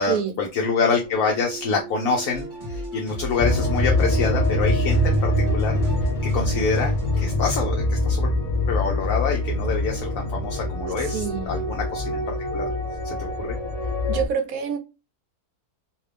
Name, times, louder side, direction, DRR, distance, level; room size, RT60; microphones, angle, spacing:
voice 1, 0.0-5.7 6.2-8.3 8.7-12.7 13.0-13.6, left 5 dB, 65° left, 1.0 m, -26 dB
sound 1, 0.8-6.1, right 2 dB, ahead, 1.3 m, -38 dB
sound 2, 2.3-7.3, equal, 35° right, 1.2 m, -36 dB
sound 3, 3.4-14.3, left 1 dB, 50° left, 0.4 m, -24 dB
voice 2, 11.0-11.5 14.1-14.8, right 7 dB, 70° right, 1.0 m, -26 dB
2.8 x 2.6 x 3.2 m
omnidirectional pair, 1.6 m